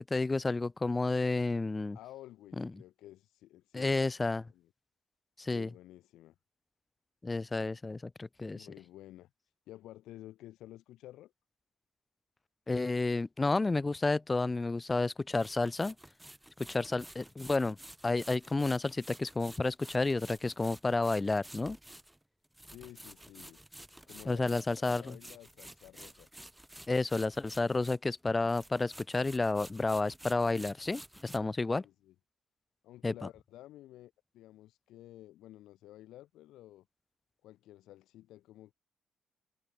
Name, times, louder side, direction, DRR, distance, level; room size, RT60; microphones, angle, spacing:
voice 1, 0.0-2.0 2.6-2.7 3.7-4.5 5.4-5.7 7.2-8.7 12.7-15.9 16.7-17.8 18.0-21.8 24.3-25.2 26.9-31.8 33.0-33.1, left 3 dB, 20° left, 0.8 m, -31 dB
voice 2, 1.9-4.1 4.4-4.7 5.5-6.3 8.5-9.3 9.7-11.3 22.6-23.6 24.0-26.3 31.6-32.1 32.8-36.9 37.4-38.7, left 14 dB, 85° left, 4.6 m, -52 dB
sound 1, 15.3-28.2 28.4-31.4, right 1 dB, 5° right, 4.0 m, -52 dB
cardioid pair, 90°, 0 cm